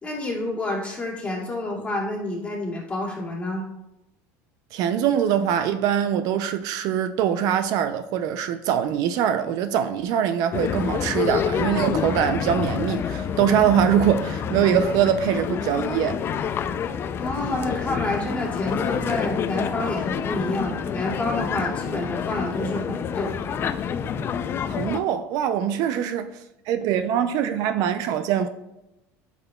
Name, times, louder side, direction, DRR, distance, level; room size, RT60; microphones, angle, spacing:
voice 1, 0.0-3.6 17.2-23.3, left 1 dB, 15° left, 2.3 m, -29 dB
voice 2, 4.7-16.2 24.7-26.3 26.7-28.5, right 9 dB, 60° right, 0.4 m, -23 dB
sound 1, 10.5-25.0, left 7 dB, 35° left, 0.4 m, -28 dB
8.9 x 6.0 x 2.3 m
supercardioid pair, 120°, 7 cm